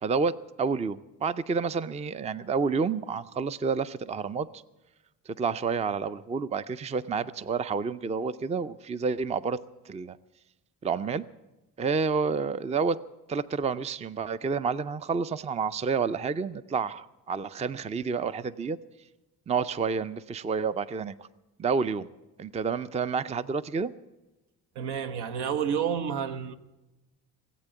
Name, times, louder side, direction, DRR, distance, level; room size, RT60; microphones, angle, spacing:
voice 1, 0.0-4.6 5.3-9.6 9.8-10.2 10.8-11.2 11.8-13.0 13.3-18.8 19.5-21.3 21.6-22.1 22.4-23.9, right 5 dB, 20° right, 0.4 m, -29 dB
voice 2, 24.7-26.6, right 7 dB, 80° right, 1.2 m, -30 dB
19.0 x 8.3 x 9.0 m
cardioid pair, 90°, 39 cm